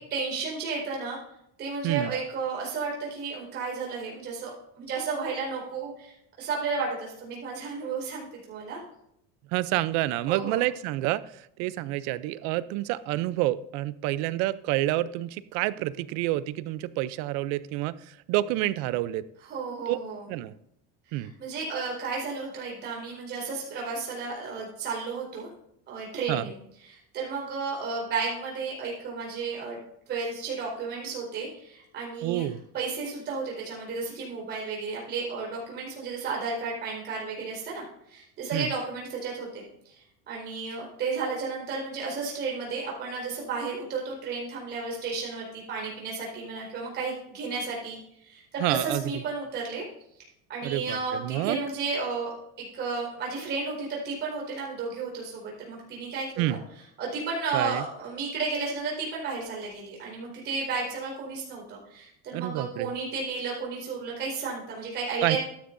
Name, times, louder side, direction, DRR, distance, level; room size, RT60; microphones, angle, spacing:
voice 1, 0.1-1.2 1.6-8.8 10.3-10.6 19.5-20.2 21.1-25.5 25.9-26.6 26.8-29.8 30.1-32.5 32.7-40.0 40.3-48.0 48.2-49.8 50.5-52.3 52.6-56.6 57.0-65.4, right 4 dB, 35° right, -3 dB, 4.4 m, -33 dB
voice 2, 9.5-19.2 19.9-20.0 20.3-20.5 21.1-21.3 26.3-26.5 32.2-32.6 38.5-38.7 48.6-49.0 50.6-51.6 56.4-56.6 57.5-57.8 62.3-62.9 65.2-65.4, right 16 dB, 65° right, 16 dB, 0.6 m, -28 dB
12.5 x 10.5 x 2.6 m, 0.75 s
cardioid pair, 175°, 30 cm